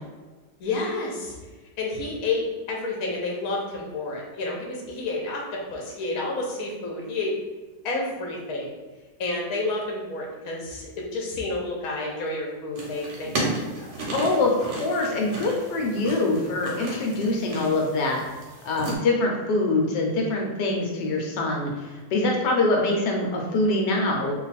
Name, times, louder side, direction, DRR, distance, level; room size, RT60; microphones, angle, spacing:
voice 1, 0.6-1.4 1.8-5.4 5.7-7.3 7.8-8.7 9.2-13.5 13.8-13.9, left 2 dB, 65° left, -2 dB, 1.2 m, -30 dB
sound 1, 12.7-19.0, right 2 dB, 90° right, 1.5 m, -34 dB
voice 2, 14.1-18.2 18.6-21.7 22.1-24.3, left 2 dB, 85° left, 0 dB, 1.3 m, -24 dB
3.3 x 2.3 x 4.0 m, 1.3 s
omnidirectional pair, 1.8 m